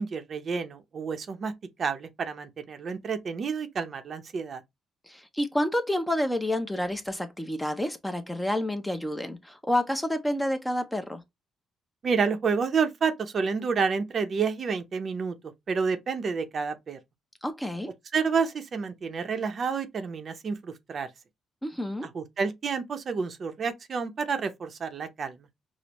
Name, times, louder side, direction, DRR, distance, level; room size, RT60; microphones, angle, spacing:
voice 1, 0.0-1.5 1.8-4.6 12.0-15.4 15.7-17.0 18.1-21.1 22.1-25.4, right 5 dB, 50° right, 0.6 m, -29 dB
voice 2, 5.1-11.2 17.4-17.9 21.6-22.1, left 1 dB, 5° left, 0.6 m, -29 dB
5.1 x 2.0 x 2.9 m
cardioid pair, 90°, 0 cm